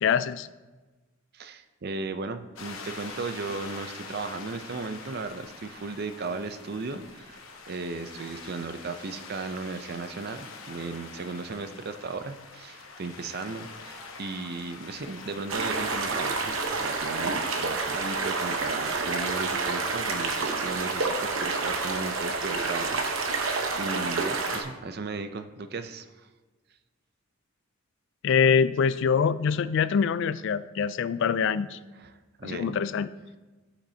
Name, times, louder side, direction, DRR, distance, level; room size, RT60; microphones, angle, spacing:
voice 1, 0.0-0.5 28.2-31.8 32.4-33.1, left 6 dB, 65° left, 15 dB, 0.3 m, -24 dB
voice 2, 1.3-26.1 32.0-32.6, right 3 dB, 50° right, 9 dB, 0.6 m, -36 dB
sound 1, 2.6-17.1, left 4 dB, 85° left, 1.0 m, -45 dB
sound 2, 15.5-24.6, right 3 dB, 80° right, 1.0 m, -29 dB
14.0 x 5.9 x 2.8 m, 1.2 s
head